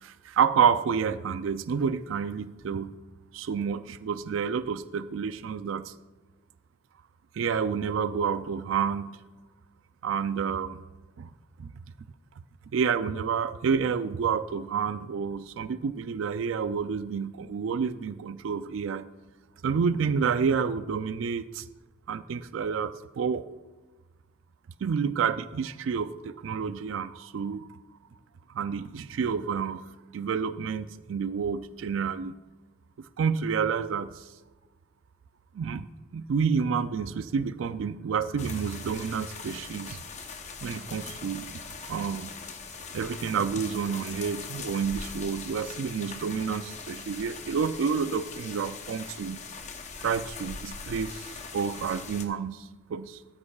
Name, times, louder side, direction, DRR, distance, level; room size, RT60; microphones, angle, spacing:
voice 1, 0.0-2.9 3.3-5.9 7.3-9.2 10.0-10.8 11.2-11.3 11.6-11.7 12.7-19.1 19.6-21.7 22.1-23.4 24.8-27.7 28.5-29.8 30.1-32.3 33.2-34.2 35.5-35.9 36.1-40.0 40.6-41.5 41.8-42.3 42.9-49.4 50.0-51.3 51.5-53.2, right 6 dB, 90° right, 13 dB, 0.4 m, -29 dB
sound 1, 38.4-52.3, left 5 dB, 35° left, 0.7 m, -41 dB
13.0 x 9.7 x 2.3 m, 1.3 s
head